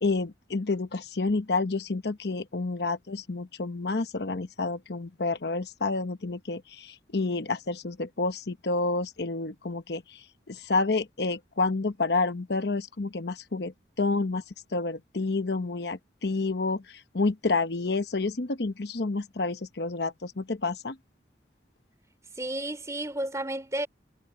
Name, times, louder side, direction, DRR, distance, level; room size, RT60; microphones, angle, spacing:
voice 1, 0.0-14.4 14.7-21.0, left 3 dB, 65° left, 0.9 m, -29 dB
voice 2, 22.4-23.9, right 1 dB, 15° right, 3.5 m, -32 dB
head